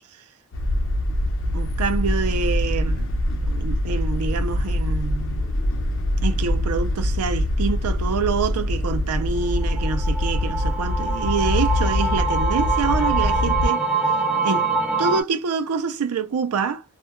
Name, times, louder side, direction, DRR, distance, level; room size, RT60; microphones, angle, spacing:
sound 1, 0.5-13.7, left 1 dB, 60° left, 0.7 m, -24 dB
voice 1, 1.5-3.1 3.5-5.4 6.2-13.8 14.4-14.7 15.0-16.8, right 5 dB, 80° right, 0.4 m, -26 dB
sound 2, 9.5-15.2, right 4 dB, 5° right, 0.4 m, -24 dB
2.2 x 2.2 x 2.9 m
head